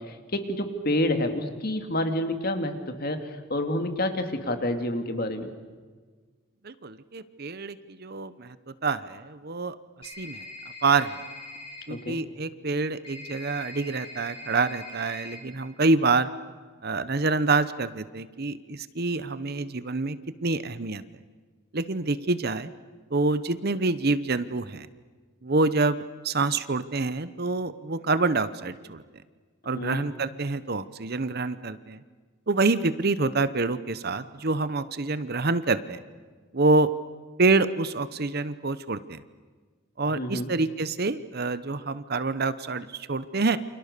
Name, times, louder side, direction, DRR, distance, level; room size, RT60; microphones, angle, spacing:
voice 1, 0.0-3.2 3.5-5.5 11.9-12.2 29.7-30.1 40.1-40.5, left 1 dB, 45° left, 6 dB, 2.5 m, -28 dB
voice 2, 6.6-8.6 8.8-10.4 10.8-11.2 11.9-16.3 16.8-21.0 21.7-22.7 23.1-24.9 25.4-29.0 29.6-32.0 32.5-36.0 36.5-36.9 37.4-39.2 40.0-43.6, right 3 dB, 45° right, 14 dB, 0.9 m, -26 dB
sound 1, 10.0-11.8 13.0-15.4, left 2 dB, 25° left, 6.1 m, -42 dB
29.0 x 27.0 x 6.8 m, 1.5 s
head